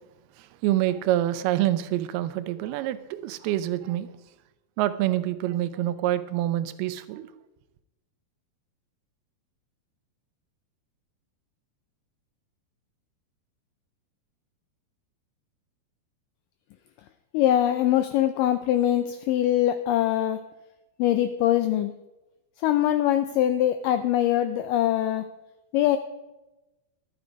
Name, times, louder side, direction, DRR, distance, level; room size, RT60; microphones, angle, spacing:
voice 1, 0.4-4.1 4.8-7.3, right 13 dB, 85° right, 2.6 m, -26 dB
voice 2, 17.3-20.4 21.0-21.9 22.6-25.2 25.7-26.0, left 12 dB, 90° left, 1.9 m, -23 dB
12.0 x 8.3 x 5.1 m
omnidirectional pair, 4.4 m